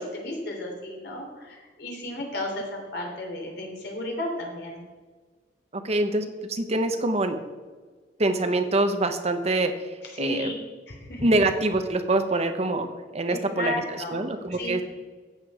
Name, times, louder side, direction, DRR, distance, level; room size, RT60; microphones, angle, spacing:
voice 1, 0.0-4.8 10.0-10.5 10.9-11.2 13.3-14.2 14.5-14.8, left 1 dB, 65° left, 0 dB, 3.3 m, -33 dB
voice 2, 5.7-7.4 8.2-9.7 10.2-10.5 11.2-13.7 14.1-14.8, right 2 dB, 40° right, 7 dB, 0.9 m, -25 dB
14.0 x 8.5 x 4.9 m, 1.4 s
head